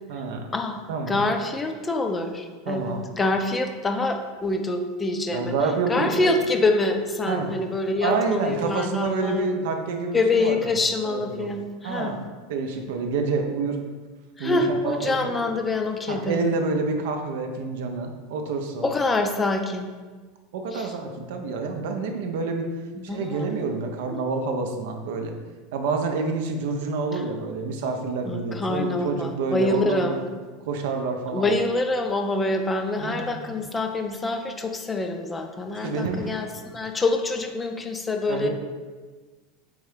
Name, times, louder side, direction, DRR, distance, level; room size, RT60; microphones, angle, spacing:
voice 1, 0.1-0.4 0.9-1.3 2.7-3.0 5.3-6.4 7.3-7.5 8.0-10.7 11.0-11.5 11.8-12.2 12.5-13.8 14.4-15.5 16.1-18.9 20.5-22.7 23.0-25.3 25.7-30.2 30.7-31.5 33.0-33.6 35.8-36.6 38.3-38.5, right 4 dB, 60° right, 4 dB, 0.4 m, -28 dB
voice 2, 1.1-5.5 5.9-9.5 10.1-12.2 14.4-16.4 18.8-19.9 20.7-20.9 22.9-23.5 24.1-24.2 27.1-27.2 28.2-30.2 31.3-38.5, left 2 dB, 20° left, 4 dB, 0.4 m, -26 dB
3.9 x 3.5 x 3.2 m, 1.4 s
figure-of-eight pair, 80°, 0 cm